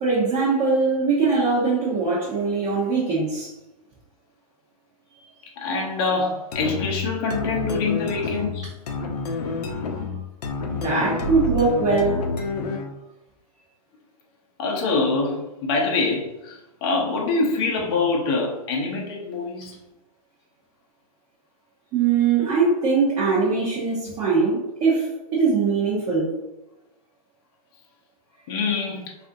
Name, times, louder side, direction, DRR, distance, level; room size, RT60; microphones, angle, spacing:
voice 1, 0.0-3.5 8.6-8.7 10.7-12.2 21.9-26.3, right 4 dB, 25° right, -7 dB, 0.7 m, -21 dB
voice 2, 0.9-1.4 5.6-8.7 14.6-19.7 28.5-29.0, left 3 dB, 40° left, -1 dB, 0.7 m, -25 dB
sound 1, 6.5-13.0, left 3 dB, 80° left, 0.7 m, -28 dB
3.4 x 2.5 x 2.6 m, 0.97 s
hypercardioid pair, 150°, 20 cm